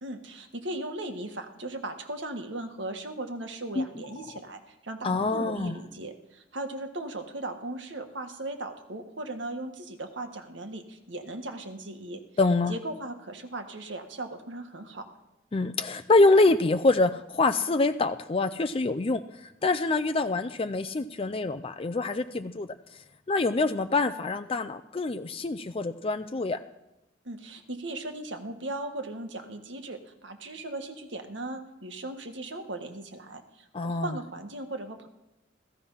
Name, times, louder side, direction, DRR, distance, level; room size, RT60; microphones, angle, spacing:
voice 1, 0.0-12.2 12.7-15.1 27.2-35.1, right 2 dB, 75° right, 6 dB, 1.7 m, -38 dB
voice 2, 5.0-5.7 12.4-12.7 15.5-22.7 23.3-26.6 33.7-34.1, left 3 dB, 30° left, 9 dB, 0.5 m, -25 dB
15.5 x 15.0 x 5.6 m, 0.94 s
head